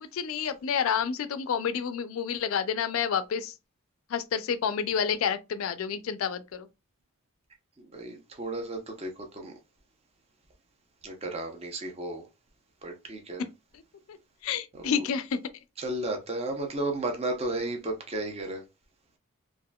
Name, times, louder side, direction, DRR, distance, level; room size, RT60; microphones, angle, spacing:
voice 1, 0.0-3.5 4.1-6.7 14.1-14.2 14.4-15.4, left 7 dB, 70° left, 0.4 m, -29 dB
voice 2, 7.9-9.5 11.0-12.2 12.8-13.4 14.8-15.0 15.8-18.6, right 2 dB, 30° right, 0.6 m, -33 dB
3.5 x 2.5 x 2.2 m
head